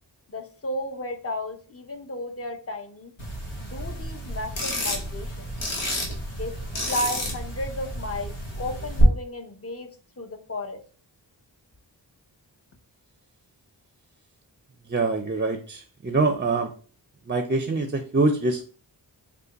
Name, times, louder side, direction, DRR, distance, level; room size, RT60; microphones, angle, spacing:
voice 1, 0.3-3.1 3.6-5.5 6.4-6.5 6.9-9.9 10.2-10.8, left 1 dB, 35° left, 5 dB, 0.7 m, -33 dB
sound 1, 3.2-9.0, equal, 90° left, 1.1 m, -31 dB
voice 2, 14.9-16.7 17.3-18.7, right 3 dB, 25° right, 6 dB, 0.5 m, -24 dB
3.3 x 2.2 x 4.0 m, 0.39 s
cardioid pair, 40°, 44 cm